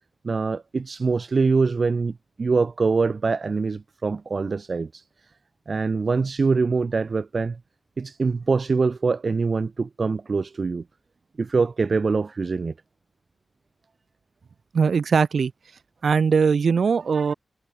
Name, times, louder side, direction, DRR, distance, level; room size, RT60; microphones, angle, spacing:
voice 1, 0.2-5.0 5.7-7.6 8.0-10.8 11.4-12.7, right 4 dB, 45° right, 2.0 m, -24 dB
voice 2, 14.7-15.5 16.0-17.3, right 5 dB, 65° right, 7.4 m, -20 dB
wide cardioid pair, 125°, 0 cm